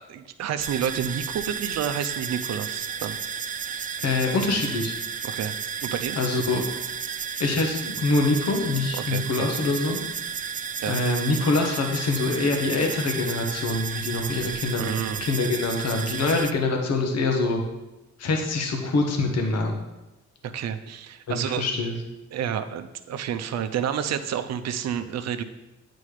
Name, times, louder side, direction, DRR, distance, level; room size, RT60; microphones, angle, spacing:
voice 1, 0.0-3.2 5.2-5.6 5.8-6.2 9.1-9.5 10.8-11.0 14.8-15.2 20.4-21.6 22.3-25.4, right 8 dB, 60° right, 9 dB, 0.7 m, -30 dB
sound 1, 0.6-16.5, right 7 dB, 30° right, 0.4 m, -33 dB
voice 2, 4.0-4.9 6.2-6.6 7.4-10.0 10.9-17.6 18.2-19.8 21.3-21.9, left 3 dB, 55° left, 2 dB, 1.3 m, -25 dB
8.4 x 4.3 x 4.9 m, 1.0 s
cardioid pair, 90°, 30 cm